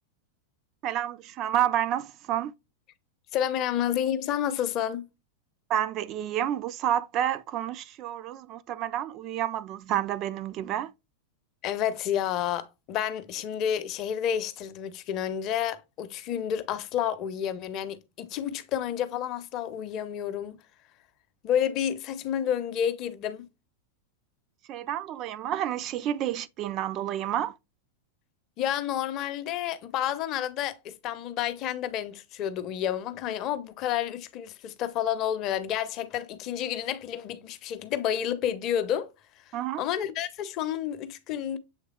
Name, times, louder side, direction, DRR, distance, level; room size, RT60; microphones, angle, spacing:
voice 1, 0.8-2.5 5.7-10.9 24.7-27.5 39.5-39.8, right 11 dB, 35° right, 0.3 m, -29 dB
voice 2, 3.3-5.1 11.6-20.6 21.4-23.5 28.6-39.1 39.8-41.6, left 10 dB, 40° left, 0.6 m, -30 dB
7.1 x 3.3 x 2.2 m
figure-of-eight pair, 90°, 0 cm